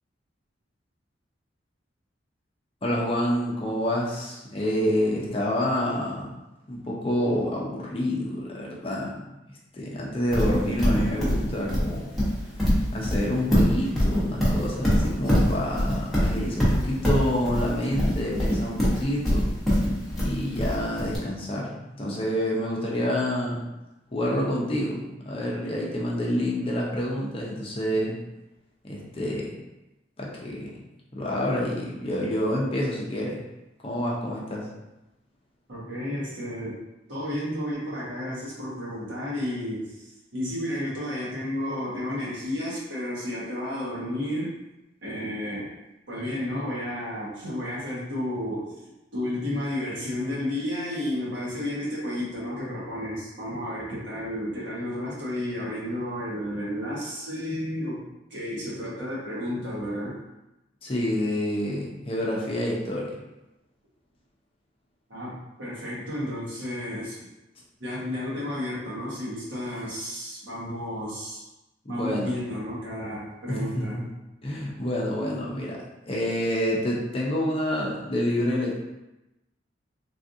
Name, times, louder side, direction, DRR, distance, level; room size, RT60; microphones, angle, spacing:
voice 1, 2.8-6.3 6.7-9.3 9.7-12.1 12.9-19.5 20.2-23.6 24.1-28.2 28.8-29.5 30.2-30.7 31.1-33.4 33.8-34.7 60.8-63.2 71.8-72.3 73.5-74.0 74.4-75.8 76.1-78.7, equal, 30° left, -3 dB, 0.5 m, -28 dB
Livestock farm animals working animals, 10.3-21.2, equal, ahead, 1.0 m, -23 dB
voice 2, 35.7-36.8 37.1-44.5 45.0-45.7 46.1-48.7 49.1-58.0 58.3-60.2 65.1-67.3 67.8-71.4 71.9-74.0, left 1 dB, 70° right, -7 dB, 1.3 m, -32 dB
3.3 x 2.5 x 2.6 m, 0.96 s
head